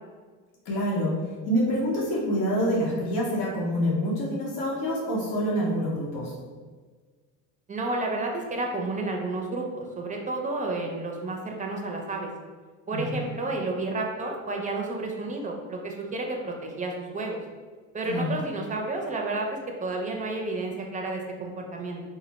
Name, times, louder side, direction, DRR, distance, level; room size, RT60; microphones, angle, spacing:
voice 1, 0.6-1.2 1.5-6.3 12.9-13.2 18.1-18.3, equal, 80° left, -4 dB, 0.9 m, -26 dB
voice 2, 7.7-12.3 12.9-17.4 17.9-22.0, right 2 dB, 20° right, 1 dB, 0.5 m, -31 dB
2.4 x 2.1 x 3.9 m, 1.5 s
supercardioid pair, 100°, 35 cm